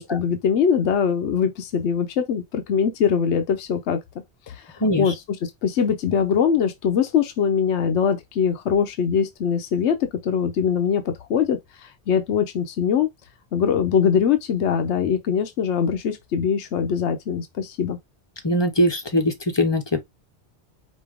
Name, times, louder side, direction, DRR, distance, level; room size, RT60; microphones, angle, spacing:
voice 1, 0.0-4.0 4.5-5.1 5.4-13.1 13.5-18.0, left 7 dB, 75° left, 1.0 m, -22 dB
voice 2, 4.8-5.1 18.4-20.0, equal, 25° left, 0.8 m, -21 dB
5.2 x 2.7 x 3.5 m
omnidirectional pair, 1.2 m